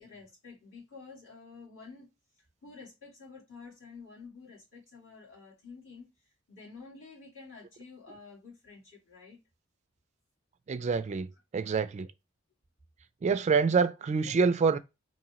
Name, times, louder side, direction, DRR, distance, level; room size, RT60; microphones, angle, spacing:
voice 1, 0.0-2.1 2.6-6.1 6.5-9.4, left 4 dB, 65° left, 2.1 m, -50 dB
voice 2, 10.7-11.3 11.5-12.1 13.2-14.8, right 5 dB, 35° right, 0.3 m, -26 dB
3.9 x 2.6 x 2.9 m
head